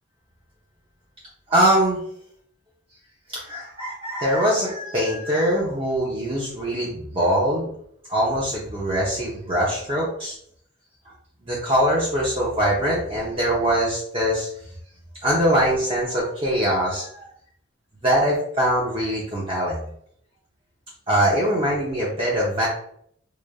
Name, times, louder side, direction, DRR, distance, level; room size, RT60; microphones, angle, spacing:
voice 1, 1.5-2.0 3.3-7.7 8.1-10.4 11.5-14.5 15.2-17.3 18.0-19.9 21.1-22.7, equal, 25° right, -6 dB, 0.8 m, -22 dB
4.9 x 2.6 x 2.3 m, 0.65 s
head